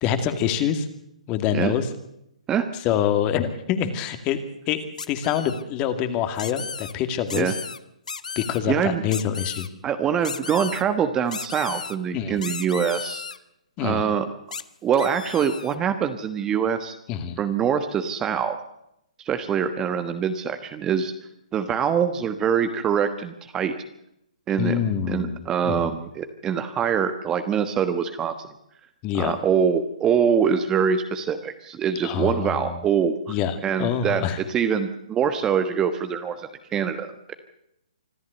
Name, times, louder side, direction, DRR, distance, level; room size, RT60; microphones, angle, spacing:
voice 1, 0.0-0.9 1.3-1.9 2.8-4.4 4.7-4.8 5.1-7.5 8.4-9.7 12.1-12.4 13.8-14.1 17.1-17.4 24.6-26.0 29.0-29.4 32.0-32.7 33.3-34.4, left 9 dB, 25° left, 9 dB, 2.2 m, -25 dB
sound 1, 5.0-5.6 6.4-6.9 7.3-7.8 8.1-8.6 9.1-9.7 10.2-10.8 11.3-12.0 12.4-13.4 14.5-14.6 14.9-15.8, left 5 dB, 80° left, 1.2 m, -34 dB
voice 2, 8.7-9.0 9.8-13.2 13.8-14.3 14.8-16.9 17.4-18.6 19.2-21.1 21.5-23.7 24.5-24.8 25.1-28.5 29.1-33.4 33.6-37.3, right 7 dB, 15° right, 9 dB, 1.3 m, -24 dB
25.5 x 13.0 x 8.2 m, 0.80 s
hypercardioid pair, 145°, 4 cm